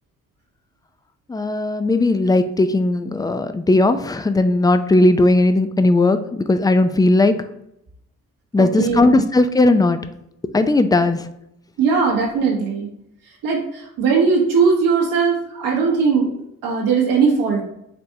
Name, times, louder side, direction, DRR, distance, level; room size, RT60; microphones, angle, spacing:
voice 1, 1.3-7.4 8.5-10.0 10.5-11.3, left 2 dB, 10° left, 9 dB, 0.5 m, -17 dB
voice 2, 8.6-9.2 11.8-12.9 13.4-17.6, right 5 dB, 85° right, -2 dB, 1.4 m, -19 dB
5.0 x 3.4 x 2.8 m, 0.78 s
supercardioid pair, 55°, 33 cm